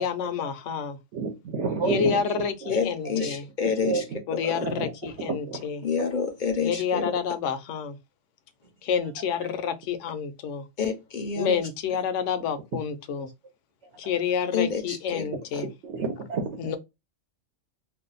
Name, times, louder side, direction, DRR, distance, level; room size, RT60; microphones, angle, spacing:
voice 1, 0.0-1.0 1.8-3.4 4.3-5.8 6.6-8.0 8.8-10.6 11.4-13.3 14.0-15.7 16.6-16.8, left 7 dB, 75° left, 0.9 m, -29 dB
voice 2, 1.1-2.7 3.1-3.3 3.6-4.2 4.5-4.9 5.2-5.6 13.2-13.3 15.6-16.8, right 4 dB, 65° right, 0.9 m, -30 dB
voice 3, 2.7-4.0 4.3-4.7 5.8-7.1 10.8-11.7 14.5-15.3 15.5-15.6, left 6 dB, 50° left, 0.6 m, -28 dB
2.6 x 2.2 x 3.8 m
omnidirectional pair, 1.3 m